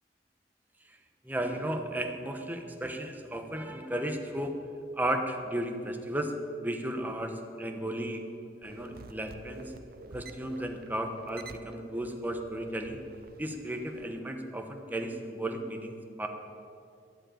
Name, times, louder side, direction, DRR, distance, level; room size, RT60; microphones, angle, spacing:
voice 1, 1.2-4.7 5.0-8.2 8.6-9.7 10.1-13.0 13.4-16.3, right 1 dB, 10° right, 4 dB, 1.1 m, -34 dB
sound 1, 8.6-14.0, right 2 dB, 60° right, 0.7 m, -48 dB
11.5 x 7.6 x 9.0 m, 2.3 s
head